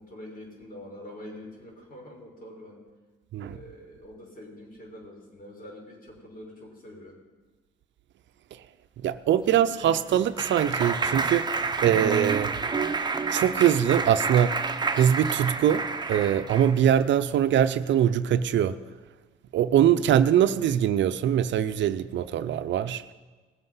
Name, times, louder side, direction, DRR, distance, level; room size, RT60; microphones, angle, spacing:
voice 1, 0.0-2.8 3.4-7.2 9.5-10.3 19.8-20.1, left 1 dB, 45° left, -1 dB, 5.6 m, -45 dB
voice 2, 9.0-12.6 13.3-18.8 19.5-23.0, right 10 dB, 70° right, 12 dB, 0.6 m, -23 dB
Clapping, 9.5-16.8, right 4 dB, 20° right, 0.9 m, -29 dB
20.0 x 7.8 x 5.6 m, 1.3 s
cardioid pair, 90°, 20 cm